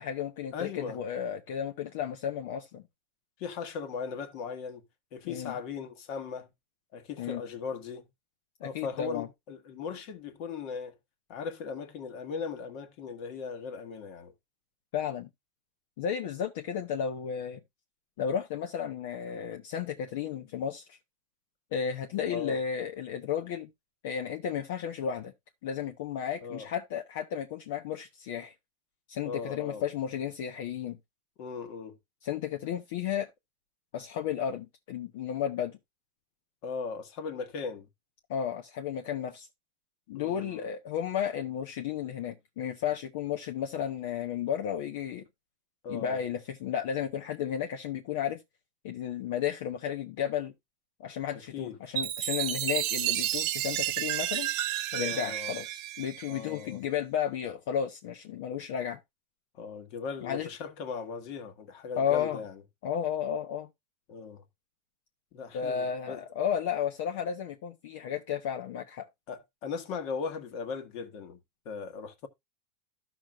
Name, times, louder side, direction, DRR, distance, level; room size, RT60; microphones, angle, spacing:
voice 1, 0.0-2.8 5.2-5.5 7.2-7.4 8.6-9.3 14.9-15.3 16.0-17.6 18.2-21.0 21.7-23.7 24.0-25.3 25.6-28.5 29.1-31.0 32.2-33.3 33.9-35.8 38.3-39.5 40.1-45.2 45.9-48.4 48.8-50.5 51.0-54.5 54.9-59.0 60.2-60.5 62.0-62.4 62.8-63.7 65.5-69.1, left 8 dB, 65° left, 1.0 m, -33 dB
voice 2, 0.5-1.0 3.4-4.8 5.1-6.5 6.9-8.1 8.6-11.0 11.3-14.3 22.2-22.6 26.4-26.7 29.2-29.8 31.4-32.0 36.6-37.9 40.1-40.7 45.8-46.2 51.3-51.8 54.9-55.6 56.3-56.8 59.5-62.6 64.1-64.4 65.3-66.2 69.3-71.4 71.6-72.3, left 5 dB, 45° left, 1.6 m, -38 dB
Chime, 52.0-56.6, right 14 dB, 45° right, 1.0 m, -31 dB
13.5 x 6.0 x 2.4 m
supercardioid pair, 160°, 0 cm